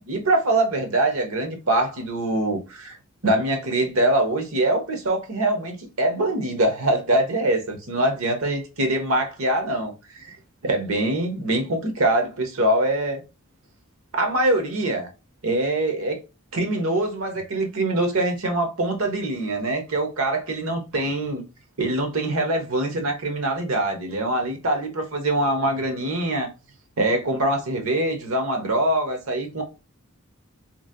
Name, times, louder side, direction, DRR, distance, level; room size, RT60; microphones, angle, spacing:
voice 1, 0.0-2.9 3.2-10.4 10.6-13.2 14.1-15.1 15.4-16.2 16.5-21.4 21.8-26.5 27.0-29.6, right 1 dB, 75° right, 1.0 m, -23 dB
3.1 x 2.6 x 2.5 m
head